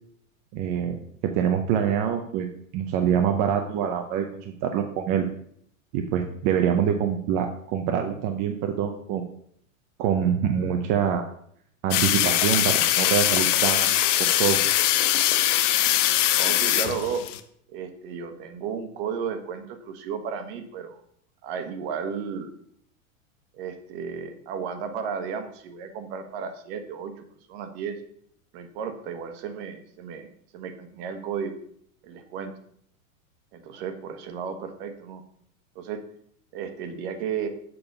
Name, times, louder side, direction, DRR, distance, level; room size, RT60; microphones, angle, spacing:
voice 1, 0.5-1.0 1.2-2.5 2.7-5.3 5.9-9.3 10.0-11.2 11.8-14.0 14.4-14.7, right 8 dB, 30° right, 4 dB, 0.5 m, -25 dB
sound 1, 11.9-17.4, left 13 dB, 60° left, 0.8 m, -22 dB
voice 2, 16.3-17.2 17.7-21.0 21.4-22.5 23.5-27.1 27.5-28.0 28.5-30.3 30.5-31.6 32.0-32.5 33.5-35.2 35.7-36.0 36.5-37.5, right 6 dB, 45° right, 7 dB, 1.3 m, -33 dB
7.0 x 5.4 x 5.3 m, 0.67 s
supercardioid pair, 150°, 41 cm